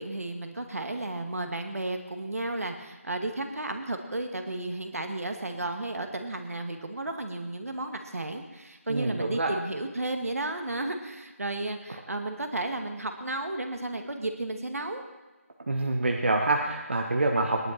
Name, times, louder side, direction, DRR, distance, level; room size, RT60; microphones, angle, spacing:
voice 1, 0.0-15.0, right 2 dB, 70° right, 5 dB, 2.1 m, -33 dB
voice 2, 8.9-9.5 15.7-17.7, right 2 dB, 50° right, 2 dB, 1.3 m, -26 dB
18.5 x 11.0 x 4.5 m, 1.2 s
figure-of-eight pair, 175°, 8 cm